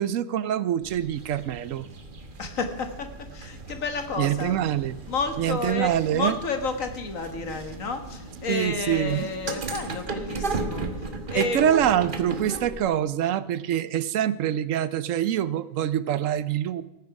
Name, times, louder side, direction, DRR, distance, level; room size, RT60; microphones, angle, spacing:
voice 1, 0.0-1.9 4.2-5.0 5.4-6.4 8.5-9.3 11.3-16.8, right 10 dB, 80° right, 17 dB, 1.1 m, -25 dB
sound 1, 0.8-12.8, right 3 dB, 40° right, 1.3 m, -36 dB
voice 2, 2.4-4.6 5.1-11.6, left 4 dB, 90° left, 7 dB, 1.9 m, -31 dB
17.0 x 9.4 x 4.8 m, 1.0 s
omnidirectional pair, 1.3 m